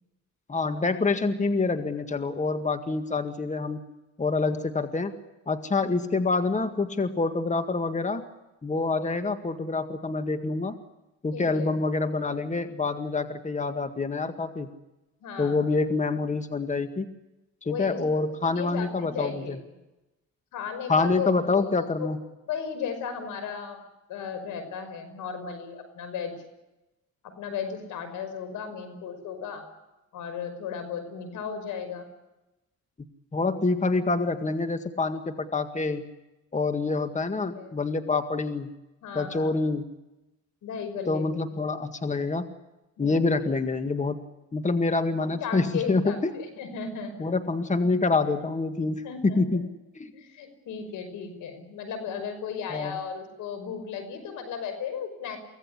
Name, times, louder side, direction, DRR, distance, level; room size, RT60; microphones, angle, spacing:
voice 1, 0.5-3.8 4.2-5.2 5.5-8.2 8.6-10.7 11.2-14.7 15.4-17.1 17.6-19.6 20.9-22.2 33.3-36.1 36.5-38.7 39.1-39.9 41.1-42.5 43.0-44.2 44.5-46.3 47.2-50.1 52.7-53.0, left 3 dB, 25° left, 8 dB, 1.9 m, -26 dB
voice 2, 11.3-11.7 15.2-15.7 17.6-18.0 18.4-19.6 20.5-22.1 22.5-23.8 24.1-26.3 27.2-29.6 30.1-32.1 37.5-37.7 39.0-39.5 40.6-41.4 43.0-43.4 45.2-47.3 49.0-49.4 50.1-55.4, left 7 dB, 85° left, 9 dB, 5.6 m, -35 dB
24.5 x 17.5 x 9.8 m, 0.97 s
cardioid pair, 90°, 30 cm